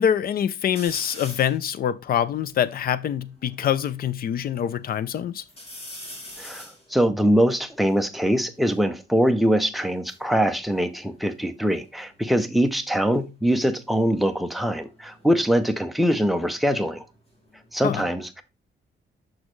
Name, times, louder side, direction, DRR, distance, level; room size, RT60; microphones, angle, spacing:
voice 1, 0.0-5.4 17.8-18.0, left 9 dB, 50° left, 0.4 m, -25 dB
sound 1, 0.8-1.6 2.2-2.3 2.4-4.0 4.5-5.1 5.5-8.9 9.8-11.7 12.0-12.5 14.0-16.7 17.0-17.8, left 1 dB, 30° left, 1.9 m, -45 dB
voice 2, 6.4-17.0 17.7-18.4, equal, ahead, 0.5 m, -23 dB
6.3 x 6.0 x 3.1 m
wide cardioid pair, 170°, 19 cm